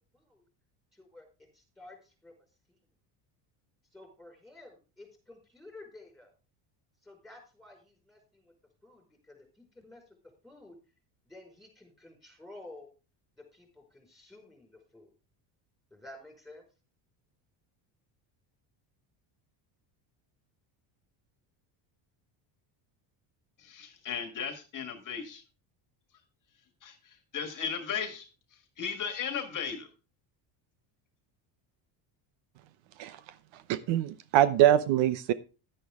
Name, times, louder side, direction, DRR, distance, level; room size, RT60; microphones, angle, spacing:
voice 1, 0.1-0.4 0.9-1.3 1.5-2.3 3.9-6.3 7.0-8.5 8.8-10.1 10.4-10.8 11.2-12.9 13.4-15.1 15.9-16.6, left 2 dB, ahead, 2 dB, 5.2 m, -52 dB
voice 2, 23.6-25.4 26.8-28.3 28.8-29.9, left 7 dB, 40° left, 7 dB, 1.7 m, -36 dB
voice 3, 33.5-35.3, right 12 dB, 70° right, 15 dB, 0.9 m, -24 dB
11.0 x 10.0 x 3.6 m, 0.32 s
cardioid pair, 130°, 47 cm